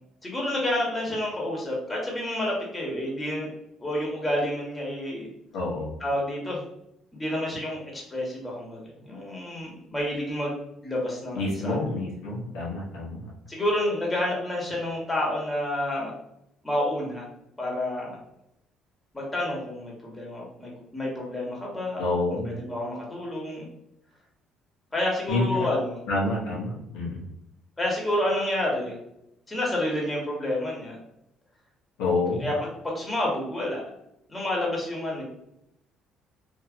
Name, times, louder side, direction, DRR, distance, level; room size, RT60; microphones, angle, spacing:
voice 1, 0.2-3.5 3.8-5.3 6.0-6.6 7.1-11.9 13.5-16.1 16.6-17.3 17.6-18.2 19.1-23.7 24.9-26.0 26.5-26.6 27.8-29.0 29.5-31.0 32.4-33.8 34.3-35.2, left 1 dB, 20° left, -2 dB, 1.2 m, -29 dB
voice 2, 5.5-5.9 11.3-13.3 22.0-22.6 25.3-25.7 26.1-27.2 32.0-32.5, left 2 dB, 80° left, -5 dB, 0.9 m, -28 dB
2.7 x 2.7 x 2.5 m, 0.81 s
supercardioid pair, 65°, 0 cm